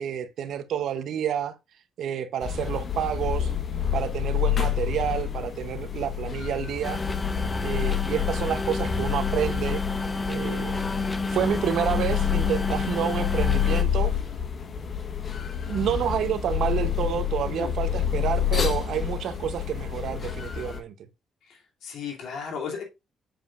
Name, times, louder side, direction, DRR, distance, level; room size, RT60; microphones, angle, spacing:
voice 1, 0.0-1.5 2.0-3.5 3.9-7.0 7.6-9.8 10.3-10.8 11.3-14.1 15.7-20.9, right 9 dB, 75° right, 0.8 m, -29 dB
sound 1, 2.4-20.8, left 9 dB, 50° left, 1.2 m, -28 dB
sound 2, 6.8-13.8, left 3 dB, 20° left, 0.9 m, -30 dB
voice 2, 21.5-22.8, left 6 dB, 75° left, 2.8 m, -35 dB
7.6 x 7.2 x 2.5 m
cardioid pair, 90°, 0 cm